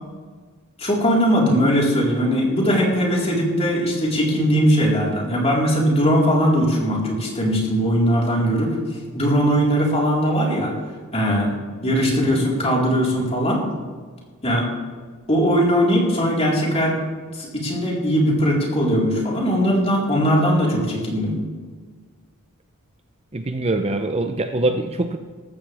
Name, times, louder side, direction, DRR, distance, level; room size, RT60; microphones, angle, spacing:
voice 1, 0.8-8.8 9.1-10.7 11.1-11.5 11.8-13.6 14.4-14.7 15.3-16.9 17.3-21.3, equal, 30° left, -4 dB, 4.3 m, -20 dB
voice 2, 23.3-25.2, right 2 dB, 30° right, 7 dB, 0.6 m, -24 dB
18.0 x 15.0 x 3.5 m, 1.5 s
head